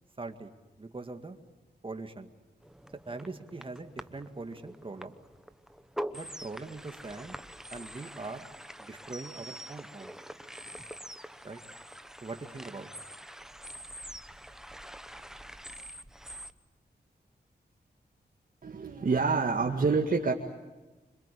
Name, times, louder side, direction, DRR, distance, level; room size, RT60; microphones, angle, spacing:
voice 1, 0.2-0.5 0.8-1.4 1.8-2.3 3.1-5.2 6.1-7.4 7.7-8.5 8.8-10.1 11.4-11.6 12.2-12.9, right 3 dB, 30° right, 6 dB, 2.1 m, -41 dB
sound 1, 2.6-16.5, equal, 5° right, 0.9 m, -45 dB
voice 2, 18.6-20.3, right 4 dB, 50° right, 0 dB, 2.0 m, -27 dB
26.5 x 26.0 x 8.5 m, 1.2 s
wide cardioid pair, 125°, 18 cm